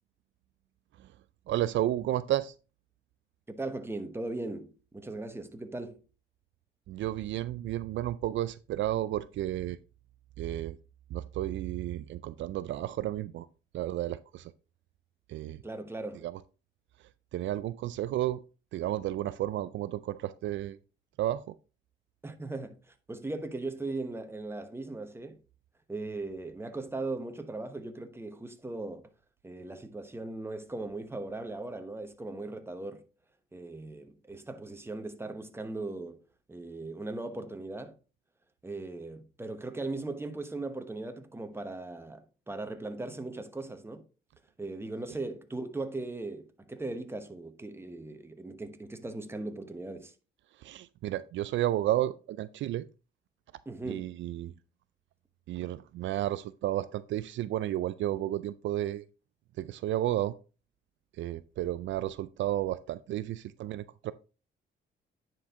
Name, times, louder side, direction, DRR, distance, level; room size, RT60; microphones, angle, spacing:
voice 1, 1.5-2.5 6.9-9.8 10.4-10.8 11.1-13.5 13.7-14.5 15.3-15.6 16.2-16.3 17.3-18.4 18.7-20.8 21.2-21.4 50.6-52.9 53.8-54.5 55.5-59.0 59.6-60.4 61.2-64.1, right 13 dB, 70° right, 0.4 m, -32 dB
voice 2, 3.5-6.0 15.6-16.2 22.2-25.4 25.9-29.1 29.4-33.0 33.5-36.2 36.5-38.0 38.6-44.0 44.6-50.1 53.7-54.1, right 2 dB, 10° right, 1.1 m, -38 dB
9.8 x 4.6 x 3.6 m
cardioid pair, 90°, 20 cm